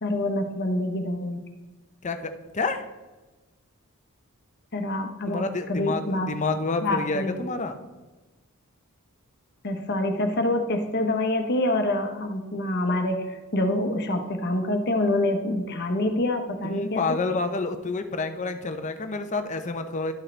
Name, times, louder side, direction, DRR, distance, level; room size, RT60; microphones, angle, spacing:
voice 1, 0.0-1.4 4.7-5.4 5.7-6.3 6.8-7.5 9.6-17.1, left 1 dB, 50° left, 5 dB, 1.0 m, -26 dB
voice 2, 2.0-2.8 5.3-7.8 16.6-20.1, left 3 dB, 35° left, 7 dB, 0.7 m, -29 dB
12.0 x 6.3 x 3.3 m, 1.2 s
head